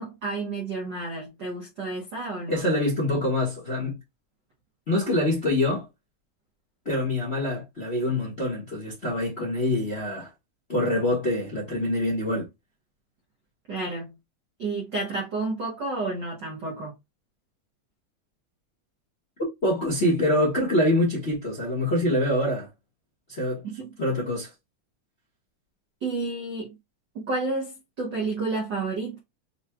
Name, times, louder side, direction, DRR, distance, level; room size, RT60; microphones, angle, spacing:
voice 1, 0.0-2.6 13.7-14.1 14.6-16.9 23.6-23.9 26.0-26.7 27.1-29.2, right 3 dB, 80° right, 1.0 m, -31 dB
voice 2, 2.5-4.0 4.9-5.8 6.8-10.3 10.7-12.4 19.6-22.7 23.3-23.6 24.0-24.5, left 1 dB, 40° left, 0.9 m, -25 dB
6.4 x 3.0 x 2.3 m
omnidirectional pair, 3.9 m